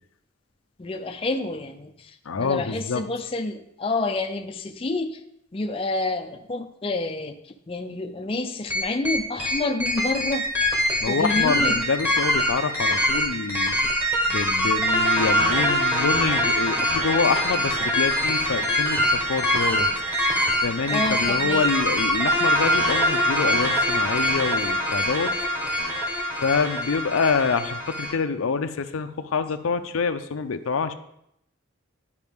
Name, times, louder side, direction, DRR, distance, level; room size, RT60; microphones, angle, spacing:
voice 1, 0.8-5.2 5.5-7.4 7.7-10.5 11.1-11.8 20.9-21.7, left 2 dB, 25° left, 5 dB, 0.4 m, -28 dB
voice 2, 2.3-3.0 11.0-13.8 14.3-19.9 20.6-25.3 26.3-30.9, left 5 dB, 85° left, 9 dB, 0.5 m, -26 dB
sound 1, 8.7-28.1, equal, 10° right, 1.2 m, -23 dB
11.0 x 5.0 x 3.6 m, 0.77 s
head